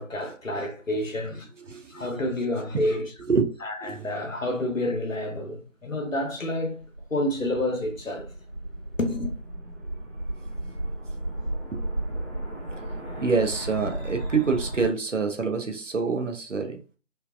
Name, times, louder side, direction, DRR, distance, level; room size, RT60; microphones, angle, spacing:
voice 1, 0.0-1.5 1.9-3.1 3.6-6.8 7.1-8.3 9.0-9.3, left 1 dB, 85° left, 1.0 m, -29 dB
voice 2, 1.7-2.2 2.7-3.0 3.3-3.4 3.8-4.0 11.7-11.8 13.2-16.8, right 4 dB, 70° right, 0.7 m, -26 dB
sound 1, 6.7-14.9, right 1 dB, 50° right, 1.1 m, -34 dB
3.1 x 2.2 x 2.4 m
figure-of-eight pair, 180°, 38 cm